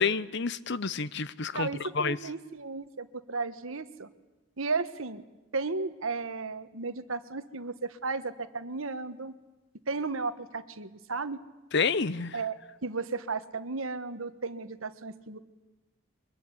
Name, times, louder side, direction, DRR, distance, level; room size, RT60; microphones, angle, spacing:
voice 1, 0.0-1.7 1.9-2.2 11.7-12.4, left 5 dB, 55° left, 0.8 m, -28 dB
voice 2, 1.5-4.1 4.6-5.2 5.5-9.3 9.9-11.4 12.3-15.4, right 4 dB, 75° right, 1.4 m, -34 dB
23.0 x 22.0 x 9.9 m
head